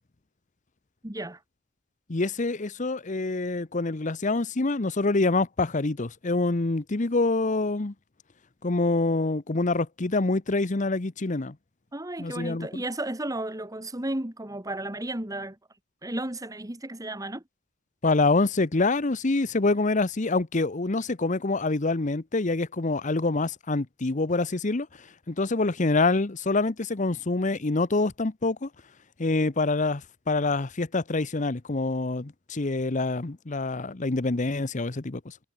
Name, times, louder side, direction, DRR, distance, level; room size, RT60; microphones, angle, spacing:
voice 1, 1.0-1.4 11.9-15.6 16.0-17.4, right 1 dB, 20° right, 2.0 m, -33 dB
voice 2, 2.1-7.9 8.6-11.5 12.2-12.7 18.0-24.9 25.3-28.7 29.2-30.0 30.3-35.3, left 3 dB, 40° left, 0.9 m, -26 dB
head